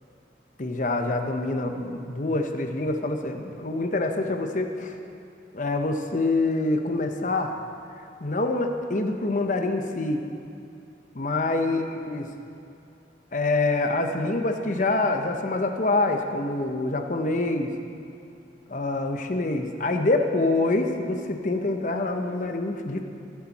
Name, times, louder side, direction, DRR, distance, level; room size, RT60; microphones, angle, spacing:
voice 1, 0.6-5.0 5.5-7.5 8.2-10.2 11.1-12.3 13.3-17.7 18.7-23.0, left 2 dB, 45° left, 5 dB, 0.9 m, -26 dB
21.0 x 7.2 x 4.2 m, 2.6 s
head